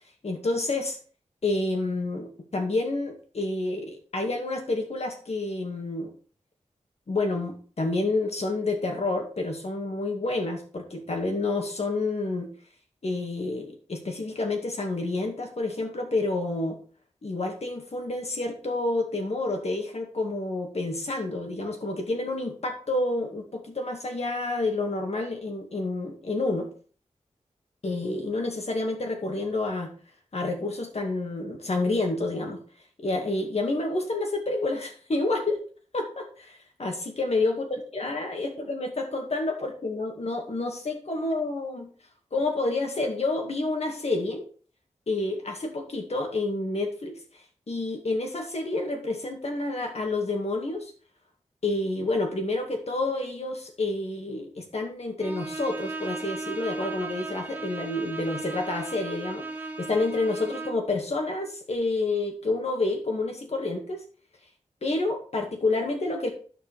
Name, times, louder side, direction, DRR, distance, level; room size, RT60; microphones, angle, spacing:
voice 1, 0.2-1.0 1.4-6.1 7.1-12.5 13.0-16.8 17.2-26.7 27.8-29.9 30.3-32.6 33.0-35.6 35.9-41.9 42.3-44.4 45.1-47.2 47.7-50.9 51.6-64.0 64.8-66.3, left 2 dB, 60° left, 3 dB, 2.2 m, -29 dB
Bowed string instrument, 55.2-60.9, right 3 dB, 15° right, 1.3 m, -36 dB
9.1 x 6.4 x 4.8 m, 0.42 s
wide cardioid pair, 80°, 12 cm